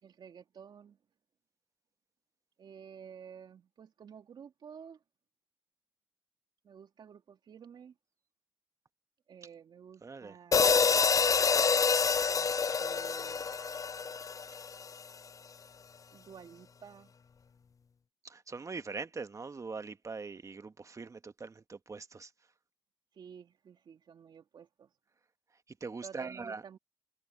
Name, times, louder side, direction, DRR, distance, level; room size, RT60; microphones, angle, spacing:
voice 1, 0.0-1.0 2.6-5.0 6.6-7.9 9.3-10.9 12.3-12.5 12.8-13.5 16.1-17.1 23.1-24.9 26.0-26.8, right 7 dB, 70° right, 2.6 m, -52 dB
voice 2, 10.0-10.4 18.2-22.3 25.8-26.6, right 4 dB, 40° right, 1.6 m, -42 dB
sound 1, 10.5-14.9, left 5 dB, 45° left, 0.6 m, -27 dB
supercardioid pair, 45°, 8 cm